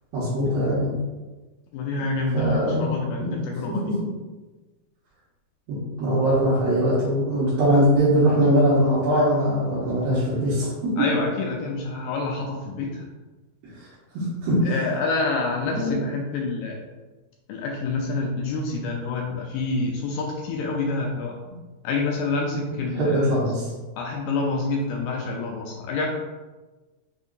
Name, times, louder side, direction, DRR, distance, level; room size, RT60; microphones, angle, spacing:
voice 1, 0.1-0.9 2.3-2.9 3.2-3.4 3.7-4.1 5.7-11.1 14.1-14.7 15.6-15.9 21.5-21.6 22.9-23.7, equal, 75° right, -12 dB, 3.0 m, -21 dB
voice 2, 1.7-3.8 11.0-13.0 14.7-16.8 17.5-21.3 21.8-23.4 24.0-26.1, left 3 dB, 85° left, 0 dB, 2.0 m, -27 dB
6.3 x 2.7 x 2.5 m, 1.2 s
omnidirectional pair, 4.4 m